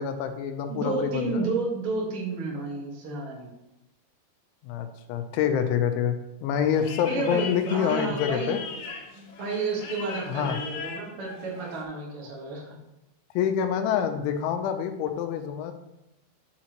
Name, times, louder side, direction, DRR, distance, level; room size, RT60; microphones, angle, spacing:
voice 1, 0.0-1.5 4.6-8.6 10.3-10.6 13.4-15.7, left 8 dB, 85° left, 7 dB, 3.0 m, -27 dB
voice 2, 0.7-3.5 7.1-8.8 9.1-12.7, right 3 dB, 75° right, -4 dB, 1.2 m, -31 dB
sound 1, 6.7-11.8, left 5 dB, 65° left, 2.9 m, -40 dB
9.5 x 6.1 x 3.0 m, 0.92 s
omnidirectional pair, 5.4 m